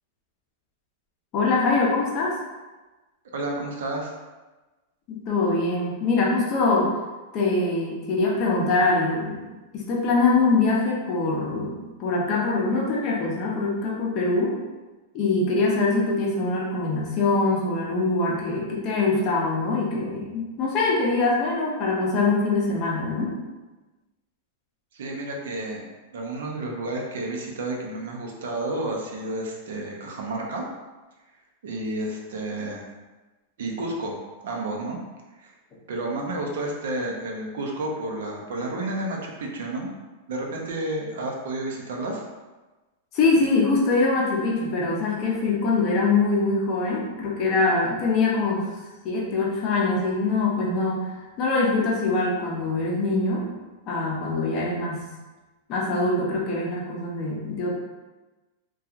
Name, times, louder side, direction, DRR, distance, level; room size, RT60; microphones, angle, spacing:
voice 1, 1.3-2.4 5.1-6.9 7.3-9.4 9.7-14.6 15.1-23.3 43.1-48.7 49.0-53.5 53.9-55.1 55.7-57.7, left 3 dB, 30° left, -3 dB, 0.5 m, -23 dB
voice 2, 3.3-4.1 24.9-25.8 26.1-30.6 31.6-32.8 33.6-34.2 34.4-35.0 35.3-35.5 35.9-39.9 40.3-42.2, right 2 dB, 80° right, 0 dB, 0.6 m, -31 dB
2.8 x 2.3 x 2.4 m, 1.2 s
supercardioid pair, 165°, 0 cm